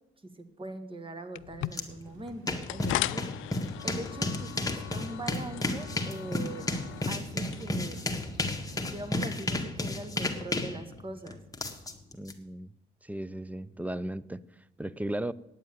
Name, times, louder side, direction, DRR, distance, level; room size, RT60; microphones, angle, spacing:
voice 1, 0.4-3.5 3.8-6.7 7.1-8.0 8.7-11.4, right 1 dB, 25° right, 8 dB, 1.8 m, -42 dB
sound 1, 1.3-9.2, left 16 dB, 80° left, 0.4 m, -39 dB
sound 2, 1.6-9.5, right 2 dB, 85° right, 2.1 m, -52 dB
sound 3, 1.7-1.8 2.1-12.3, left 2 dB, 15° left, 1.7 m, -33 dB
voice 2, 12.1-12.7 13.0-14.4 14.8-15.3, right 1 dB, 5° right, 19 dB, 0.5 m, -35 dB
9.5 x 8.4 x 9.2 m, 0.86 s
cardioid pair, 90°, 20 cm